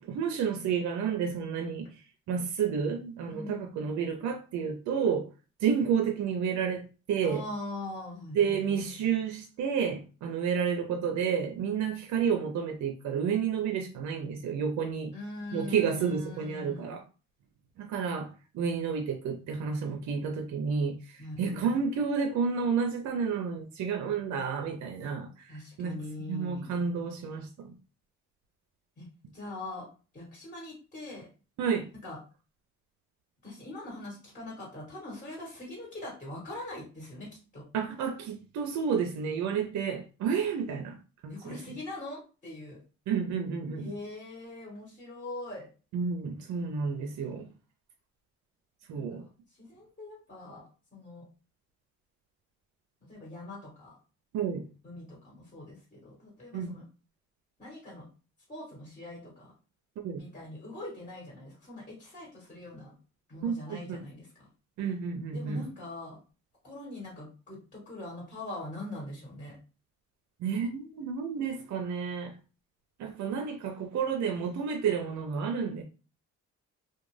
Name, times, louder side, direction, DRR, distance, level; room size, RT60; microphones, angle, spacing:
voice 1, 0.0-5.3 5.6-7.4 8.3-15.1 15.5-17.0 17.8-26.0 26.3-27.7 31.6-31.9 37.7-41.0 41.2-41.8 43.1-43.9 45.9-47.5 48.9-49.3 54.3-54.7 56.5-56.8 60.0-60.2 63.4-64.0 64.8-65.7 70.4-72.4 73.0-75.8, right 6 dB, 70° right, 0.5 m, -31 dB
voice 2, 3.3-3.8 7.2-8.6 15.1-17.0 21.2-21.6 25.5-26.7 29.0-29.1 29.3-29.9 30.1-31.3 32.0-32.2 33.4-37.3 37.5-37.6 41.3-42.8 43.7-45.7 48.9-49.2 49.6-51.3 53.1-54.0 54.8-56.8 57.6-58.1 58.5-59.5 60.2-62.9 63.3-64.5 65.3-66.2 66.6-69.6, left 2 dB, 25° left, 1.3 m, -42 dB
2.4 x 2.2 x 3.1 m
cardioid pair, 90°, 30 cm